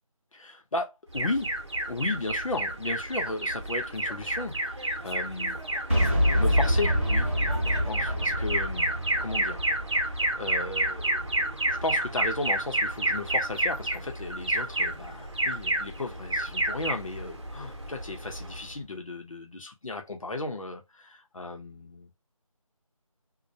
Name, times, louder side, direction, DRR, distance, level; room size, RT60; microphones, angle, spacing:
voice 1, 0.3-1.5 1.9-5.6 6.4-7.3 7.7-8.9 9.2-9.6 9.9-22.1, left 2 dB, 65° left, 0.8 m, -35 dB
Alarm, 1.1-18.8, right 1 dB, 55° right, 0.8 m, -30 dB
Boom, 5.9-11.8, equal, 25° right, 0.7 m, -27 dB
2.3 x 2.0 x 2.7 m
figure-of-eight pair, 180°, 18 cm